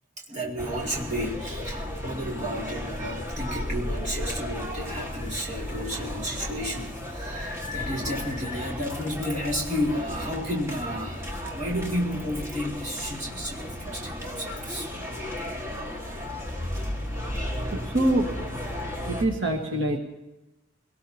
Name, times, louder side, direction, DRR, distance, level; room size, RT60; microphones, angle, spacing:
voice 1, 0.2-14.9, equal, 35° right, -2 dB, 2.4 m, -32 dB
sound 1, 0.6-19.2, left 1 dB, 15° right, 1.8 m, -34 dB
voice 2, 17.4-18.5 19.0-20.0, right 1 dB, 75° right, 1 dB, 1.6 m, -26 dB
23.5 x 18.0 x 2.9 m, 0.93 s
head